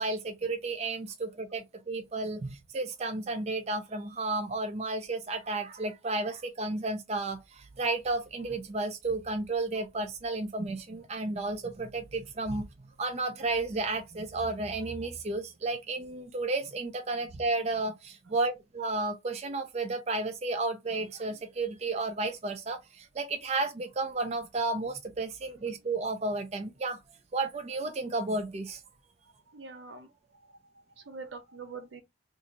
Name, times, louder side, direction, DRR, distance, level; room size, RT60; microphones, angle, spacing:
voice 1, 0.0-12.7 13.0-27.0 27.3-28.8, right 3 dB, 35° right, 0.4 m, -32 dB
voice 2, 29.2-32.0, right 4 dB, 80° right, 0.8 m, -46 dB
2.7 x 2.5 x 4.0 m
head